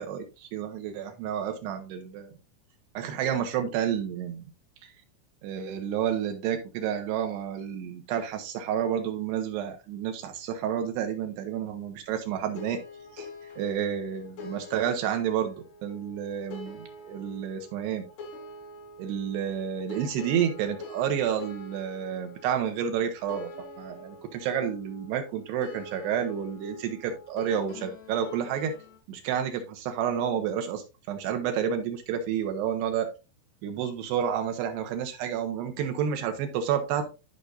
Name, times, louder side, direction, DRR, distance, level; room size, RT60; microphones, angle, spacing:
voice 1, 0.0-2.3 2.9-4.5 5.4-12.8 13.1-13.3 13.6-15.5 15.8-18.1 19.0-23.5 23.8-28.7 29.1-33.1 33.6-37.0, right 8 dB, 75° right, 5 dB, 2.6 m, -30 dB
sound 1, 12.5-29.0, left 2 dB, 65° left, 3.6 m, -45 dB
13.0 x 4.9 x 2.6 m, 0.29 s
omnidirectional pair, 5.6 m